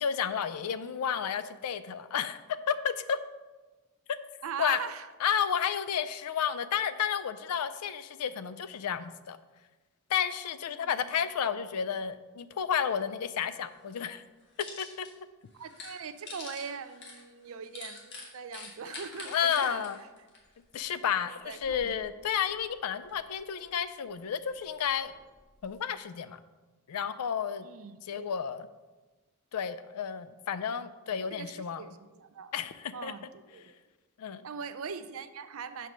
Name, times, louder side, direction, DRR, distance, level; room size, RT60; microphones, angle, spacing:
voice 1, 0.0-2.4 2.7-3.2 4.6-4.8 5.2-9.4 10.1-14.2 14.8-15.1 19.3-20.0 20.7-25.1 25.6-26.4 26.9-27.7 28.1-28.7 29.5-31.8 32.5-33.1 34.2-34.4, left 8 dB, 90° left, 12 dB, 0.4 m, -31 dB
voice 2, 4.4-5.1 10.7-11.1 15.5-20.1 21.2-22.0 27.6-28.4 31.3-32.5 32.9-33.8 34.4-35.9, right 6 dB, 65° right, 11 dB, 0.4 m, -41 dB
sound 1, 13.4-13.5 13.9-15.1 15.5-21.0 21.4-22.0 22.4-23.7 24.2-25.8, left 3 dB, 50° left, 1.4 m, -47 dB
5.1 x 4.6 x 6.0 m, 1.2 s
head